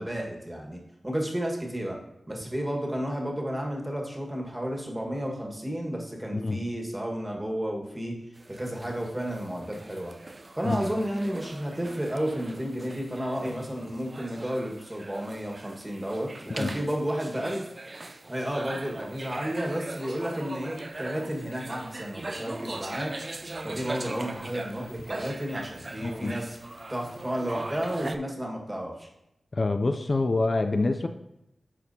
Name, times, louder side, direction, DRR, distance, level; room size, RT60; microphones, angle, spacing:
voice 1, 0.0-2.0 2.3-8.1 8.5-10.1 10.5-17.6 18.3-23.1 23.6-26.6 26.9-29.1, equal, 20° right, 0 dB, 1.6 m, -32 dB
sound 1, 8.3-28.2, right 2 dB, 40° right, 0.5 m, -41 dB
voice 2, 26.0-26.3 29.5-31.1, left 3 dB, 50° left, 7 dB, 0.4 m, -26 dB
12.0 x 4.2 x 2.8 m, 0.85 s
cardioid pair, 45°, 0 cm